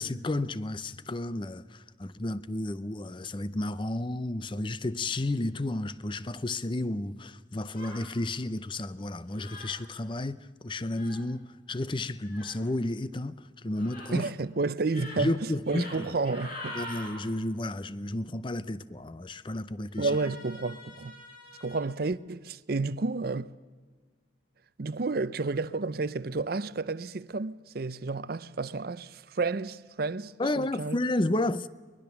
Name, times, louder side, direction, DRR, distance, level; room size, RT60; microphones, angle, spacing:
voice 1, 0.0-10.4 10.6-14.3 15.2-16.1 16.7-20.1 30.4-31.7, left 2 dB, 25° left, 0.6 m, -32 dB
sound 1, 7.7-8.1 9.3-9.7 10.9-11.2 12.2-12.5 13.7-14.1 14.8-15.2 15.6-16.0 16.2-17.1 19.9-21.8, left 1 dB, 45° left, 6.8 m, -44 dB
voice 2, 14.1-16.8 20.0-21.2 21.6-23.5 24.8-31.0, right 3 dB, 50° right, 0.6 m, -31 dB
23.0 x 21.0 x 7.1 m
head